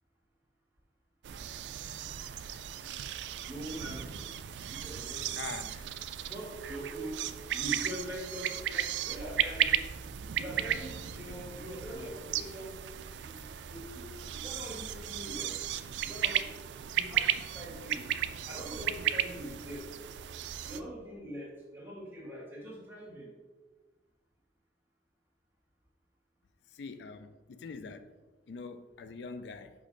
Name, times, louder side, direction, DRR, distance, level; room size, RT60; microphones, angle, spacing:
sound 1, 1.2-20.8, right 10 dB, 80° right, 0.4 m, -35 dB
voice 1, 3.4-4.3 4.7-5.8 6.3-7.2 7.5-9.8 10.4-12.8 13.2-15.6 16.0-18.1 18.5-20.1 20.7-23.3, right 1 dB, 10° right, 1.8 m, -43 dB
voice 2, 5.4-5.9 26.7-28.1 28.5-29.7, left 4 dB, 70° left, 0.4 m, -43 dB
5.4 x 5.2 x 3.8 m
head